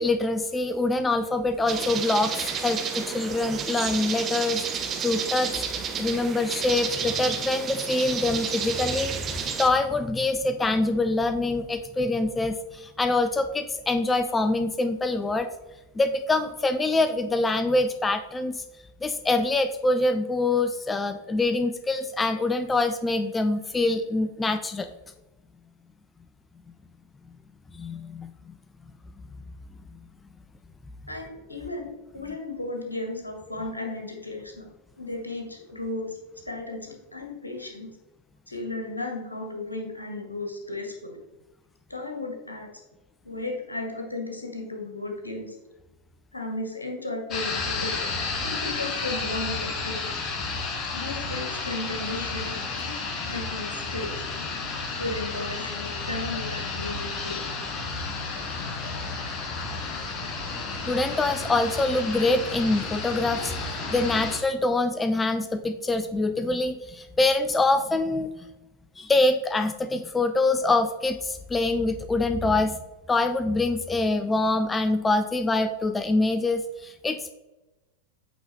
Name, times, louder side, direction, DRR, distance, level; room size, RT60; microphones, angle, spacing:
voice 1, 0.0-5.6 6.0-15.5 16.0-18.6 19.0-24.9 27.7-28.3 60.9-68.3 69.0-72.8 73.1-77.3, left 2 dB, 15° left, 9 dB, 0.4 m, -25 dB
sound 1, 1.7-9.7, right 6 dB, 25° right, 0.7 m, -31 dB
voice 2, 31.1-34.7 35.0-36.2 36.4-38.0 38.5-41.2 41.9-42.7 43.2-45.5 46.3-48.1 48.4-50.1 50.9-54.5 55.0-57.5 58.4-58.5, left 2 dB, 80° left, 2 dB, 1.5 m, -35 dB
sound 2, 47.3-64.4, left 4 dB, 30° left, 1.4 m, -32 dB
8.4 x 3.9 x 4.2 m, 1.1 s
figure-of-eight pair, 90°, 0 cm